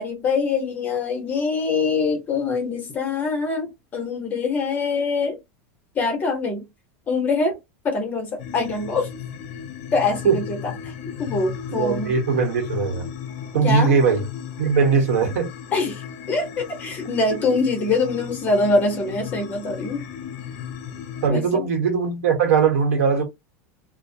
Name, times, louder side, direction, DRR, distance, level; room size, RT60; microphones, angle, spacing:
voice 1, 0.0-5.4 5.9-6.7 7.1-7.6 7.8-9.1 9.9-10.6 11.2-12.1 13.6-14.0 15.7-20.0 21.3-21.6, left 3 dB, 20° left, 1.0 m, -24 dB
sound 1, 8.4-21.3, left 8 dB, 55° left, 0.6 m, -35 dB
voice 2, 11.7-13.1 13.5-14.3 14.6-15.5 17.3-17.4 21.2-23.2, right 5 dB, 85° right, 1.0 m, -20 dB
2.3 x 2.1 x 2.7 m
supercardioid pair, 155°, 8 cm